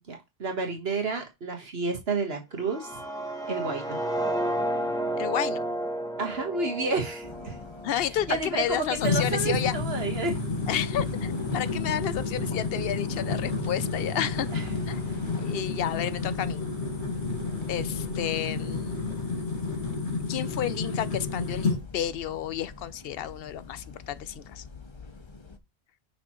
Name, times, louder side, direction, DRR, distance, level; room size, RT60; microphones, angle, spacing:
voice 1, 0.1-3.0 3.5-4.0 6.2-7.6 8.3-10.4 14.5-14.8, right 4 dB, 65° right, 1.6 m, -30 dB
sound 1, 2.6-8.5, right 1 dB, 5° left, 1.1 m, -32 dB
voice 2, 5.2-5.6 7.8-9.8 10.7-14.5 14.9-15.0 15.4-16.7 17.7-19.0 20.3-24.6, left 10 dB, 65° left, 0.8 m, -31 dB
sound 2, 7.2-25.6, left 4 dB, 30° left, 0.8 m, -43 dB
sound 3, 9.0-21.8, left 4 dB, 90° left, 2.6 m, -30 dB
9.2 x 5.7 x 3.1 m
omnidirectional pair, 1.1 m